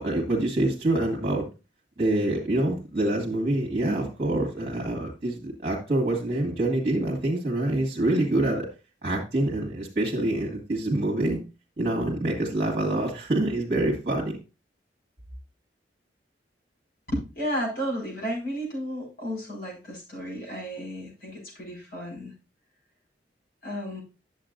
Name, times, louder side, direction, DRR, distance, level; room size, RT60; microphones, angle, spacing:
voice 1, 0.0-1.4 2.0-8.7 9.0-11.4 11.8-14.4, right 1 dB, 35° right, -2 dB, 1.9 m, -26 dB
voice 2, 17.1-22.3 23.6-24.0, equal, 60° left, -1 dB, 4.9 m, -33 dB
10.5 x 7.3 x 2.5 m, 0.29 s
head